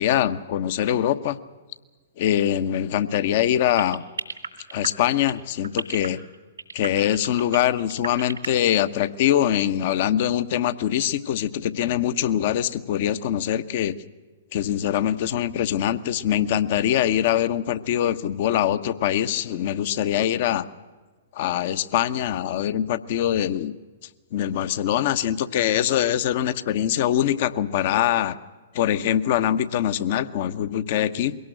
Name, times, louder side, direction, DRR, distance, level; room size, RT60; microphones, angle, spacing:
voice 1, 0.0-1.4 2.2-4.0 4.7-6.2 6.7-14.0 14.5-20.7 21.3-23.7 24.3-28.4 28.7-31.3, left 11 dB, 50° left, 13 dB, 1.0 m, -23 dB
sound 1, 3.8-8.7, right 5 dB, 85° right, 2.1 m, -32 dB
22.5 x 18.0 x 7.8 m, 1.3 s
figure-of-eight pair, 115°, 0 cm